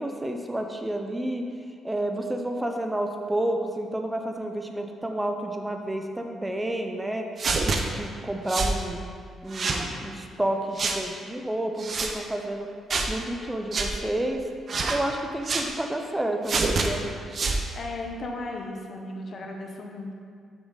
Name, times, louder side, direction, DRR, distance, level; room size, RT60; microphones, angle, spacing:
voice 1, 0.0-1.4 1.8-7.3 7.6-9.0 9.4-12.7 13.1-14.4 14.9-17.0, right 1 dB, 10° right, 4 dB, 0.7 m, -30 dB
sound 1, 7.4-7.8 8.5-8.8 9.5-9.8 10.8-11.0 11.8-12.1 12.9-13.1 13.7-13.9 14.7-15.0 15.4-15.7 16.5-16.9 17.3-17.6, right 3 dB, 45° right, 0.8 m, -26 dB
voice 2, 17.8-20.1, left 2 dB, 50° left, 2 dB, 1.0 m, -35 dB
7.1 x 6.0 x 4.0 m, 2.2 s
cardioid pair, 90°, 0 cm